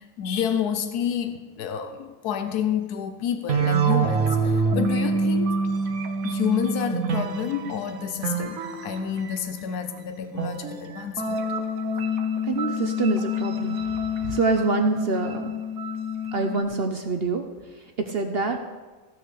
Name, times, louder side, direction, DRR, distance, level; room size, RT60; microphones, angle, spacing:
voice 1, 0.0-5.6 6.2-11.4, left 8 dB, 90° left, 9 dB, 1.3 m, -29 dB
sound 1, 3.5-9.6 10.4-16.6, right 2 dB, 65° right, 1.4 m, -26 dB
voice 2, 12.4-13.8 14.2-15.4 16.3-17.4 18.0-18.6, right 4 dB, 50° right, 5 dB, 0.9 m, -25 dB
15.0 x 6.3 x 6.4 m, 1.3 s
omnidirectional pair, 1.6 m